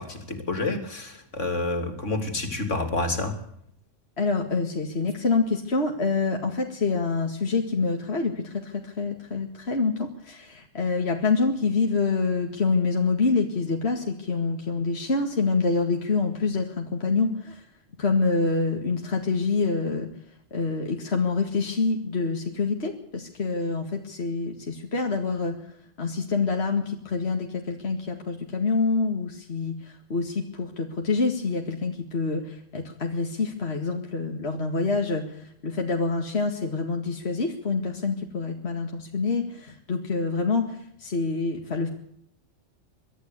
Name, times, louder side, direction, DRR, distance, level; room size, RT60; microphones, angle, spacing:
voice 1, 0.0-3.3, left 2 dB, 70° left, 7 dB, 3.5 m, -29 dB
voice 2, 4.2-17.7 18.0-20.1 20.5-25.6 26.0-41.9, left 4 dB, 55° left, 2 dB, 2.3 m, -26 dB
23.5 x 13.5 x 8.3 m, 0.69 s
omnidirectional pair, 1.3 m